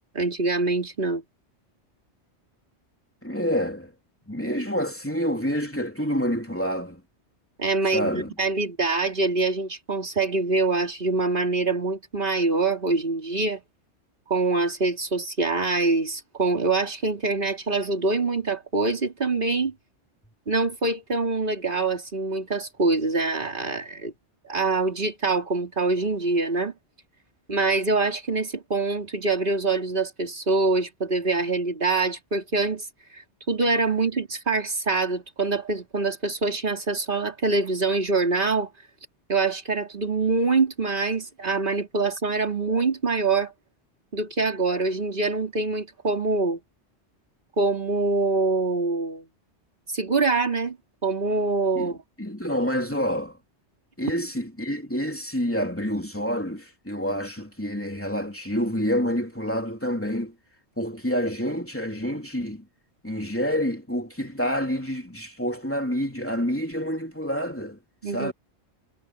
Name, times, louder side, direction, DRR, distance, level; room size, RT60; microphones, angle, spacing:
voice 1, 0.1-1.2 7.6-13.6 14.3-19.7 20.5-24.1 24.4-26.7 27.5-32.9 33.1-33.2 33.5-38.7 39.3-43.5 44.1-46.6 47.6-49.3 49.9-50.8 51.0-52.0 68.0-68.3, right 3 dB, 45° right, 3.5 m, -25 dB
voice 2, 3.2-3.9 4.3-7.0 7.9-8.3 51.7-51.9 52.2-53.4 54.0-60.3 60.8-62.6 63.0-67.8 68.1-68.3, equal, 10° left, 3.3 m, -28 dB
omnidirectional pair, 1.2 m